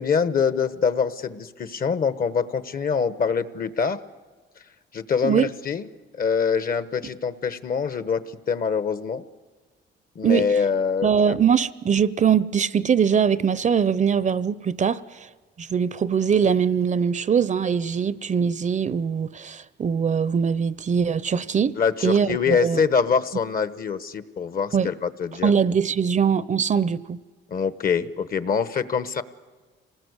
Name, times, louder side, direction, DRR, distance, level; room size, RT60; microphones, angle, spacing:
voice 1, 0.0-4.0 4.9-9.2 10.1-11.3 21.8-25.5 27.5-29.2, left 6 dB, 45° left, 1.1 m, -24 dB
voice 2, 11.0-15.3 15.6-21.8 22.0-22.8 24.7-24.9 25.4-27.2, right 7 dB, 40° right, 0.6 m, -22 dB
26.5 x 19.0 x 8.1 m
cardioid pair, 90°, 20 cm